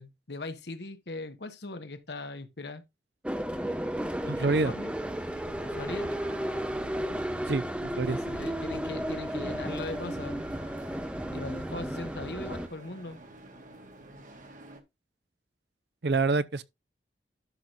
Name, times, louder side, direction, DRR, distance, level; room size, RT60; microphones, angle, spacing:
voice 1, 0.0-2.8 4.2-4.9 5.6-6.1 8.1-10.5 11.3-13.2, left 2 dB, 70° left, 1.3 m, -40 dB
sound 1, 3.2-12.7, equal, 5° right, 0.7 m, -33 dB
sound 2, 3.5-14.8, right 2 dB, 45° right, 1.6 m, -49 dB
voice 2, 4.3-4.7 7.5-7.6 8.0-8.2 16.0-16.6, right 3 dB, 70° right, 0.6 m, -26 dB
12.0 x 6.1 x 2.5 m
head